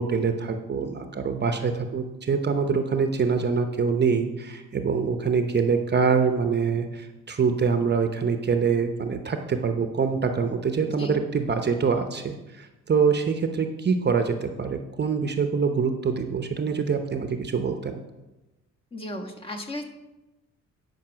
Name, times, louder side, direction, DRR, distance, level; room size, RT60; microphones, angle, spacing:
voice 1, 0.0-18.0, right 5 dB, 35° right, 6 dB, 0.8 m, -25 dB
voice 2, 10.9-11.2 18.9-19.9, left 1 dB, 20° left, 1 dB, 1.5 m, -35 dB
10.5 x 5.4 x 6.1 m, 1.0 s
cardioid pair, 90°, 30 cm